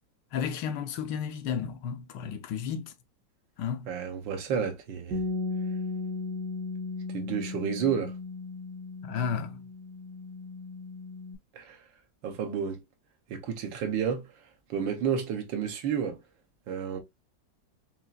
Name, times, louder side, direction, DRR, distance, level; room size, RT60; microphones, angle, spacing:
voice 1, 0.3-2.9 3.6-3.9 9.0-9.6, left 7 dB, 75° left, 1.2 m, -32 dB
voice 2, 3.9-5.2 7.1-8.1 11.5-11.8 12.2-12.8 13.3-14.2 14.7-16.2 16.7-17.0, right 7 dB, 85° right, 1.7 m, -31 dB
Bass guitar, 5.1-11.4, left 3 dB, 65° right, 1.3 m, -36 dB
5.5 x 2.9 x 2.3 m
omnidirectional pair, 2.0 m